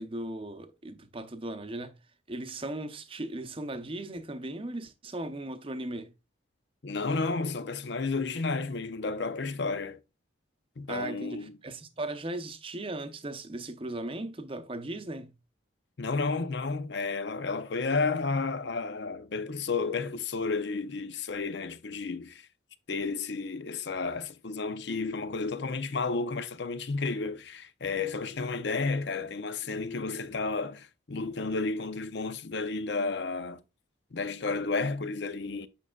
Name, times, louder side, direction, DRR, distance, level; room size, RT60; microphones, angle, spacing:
voice 1, 0.0-1.9 2.3-6.1 10.9-15.3, right 1 dB, 25° right, 0.7 m, -37 dB
voice 2, 6.8-10.0 10.8-11.5 16.0-22.5 22.9-33.6 34.1-35.7, left 4 dB, 60° left, 0.6 m, -32 dB
8.6 x 5.4 x 2.3 m
head